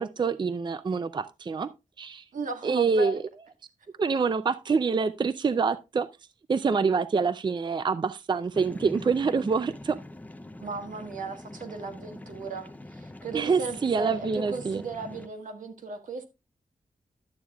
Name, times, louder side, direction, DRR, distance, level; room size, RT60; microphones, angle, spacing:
voice 1, 0.0-1.7 2.0-2.2 2.6-3.2 4.0-6.1 6.5-10.0 13.3-14.8, right 5 dB, 35° right, 0.4 m, -26 dB
voice 2, 2.3-3.2 10.6-16.2, right 3 dB, 85° right, 1.7 m, -36 dB
sound 1, 8.5-15.3, left 1 dB, 10° left, 0.6 m, -44 dB
11.5 x 8.7 x 2.3 m
wide cardioid pair, 120°, 13 cm